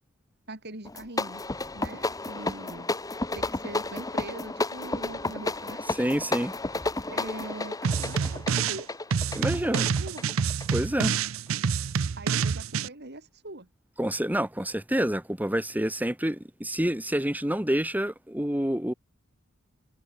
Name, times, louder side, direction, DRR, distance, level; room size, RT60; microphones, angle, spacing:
voice 1, 0.5-1.4 1.7-2.9 3.3-5.8 7.1-8.9 9.5-10.2 12.2-13.7, right 2 dB, 50° right, 4.5 m, -42 dB
sound 1, 0.8-11.2, left 2 dB, 15° left, 1.2 m, -32 dB
voice 2, 5.9-6.5 9.3-9.9 10.7-11.2 14.0-18.9, right 1 dB, 10° right, 2.0 m, -28 dB
sound 2, 7.8-8.8 9.1-12.9, right 6 dB, 70° right, 0.5 m, -27 dB
head